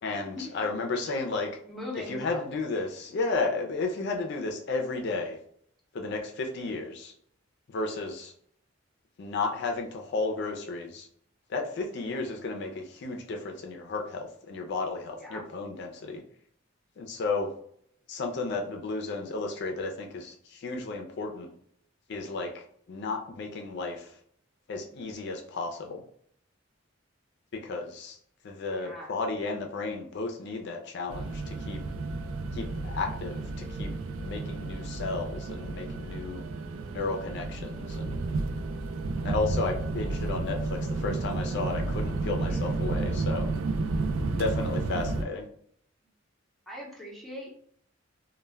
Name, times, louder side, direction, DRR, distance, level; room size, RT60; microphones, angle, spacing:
voice 1, 0.0-1.6 2.1-5.4 5.9-7.1 7.7-8.3 9.2-11.1 11.5-16.2 17.0-17.5 18.1-21.5 22.1-24.2 24.7-26.0 27.5-28.2 28.4-31.8 32.5-33.9 34.2-36.4 36.9-38.2 39.2-43.5 44.4-45.5, left 3 dB, 60° left, 3 dB, 0.4 m, -33 dB
voice 2, 1.7-2.4 15.2-15.4 28.7-29.2 42.5-42.9 46.7-47.5, left 1 dB, ahead, -3 dB, 0.6 m, -41 dB
sound 1, 31.1-45.2, right 3 dB, 85° right, 0.3 m, -32 dB
2.1 x 2.1 x 3.3 m, 0.64 s
head